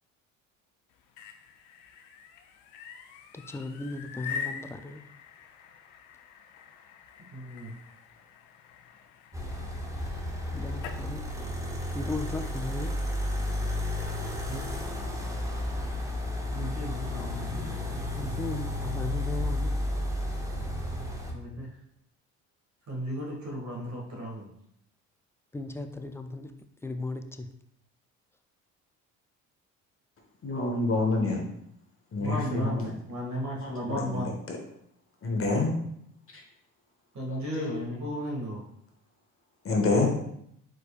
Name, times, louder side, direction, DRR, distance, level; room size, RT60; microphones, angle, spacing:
sound 1, 0.9-11.0, left 6 dB, 85° left, 0.6 m, -44 dB
voice 1, 3.3-5.0 10.5-11.3 11.9-13.0 18.2-19.7 25.5-26.5 26.8-27.5, left 2 dB, 10° left, 8 dB, 0.3 m, -36 dB
voice 2, 7.3-7.7 14.5-14.6 16.5-17.8 21.3-21.7 22.9-24.4 32.2-34.4 37.1-38.6, equal, 50° right, -2 dB, 1.8 m, -35 dB
sound 2, 9.3-21.3, left 1 dB, 10° right, 0.9 m, -32 dB
voice 3, 30.4-31.5 32.1-32.9 33.6-34.6 35.2-35.7 37.3-38.2 39.6-40.1, left 3 dB, 35° left, 1 dB, 1.2 m, -28 dB
4.9 x 4.4 x 2.4 m, 0.73 s
supercardioid pair, 70°, 37 cm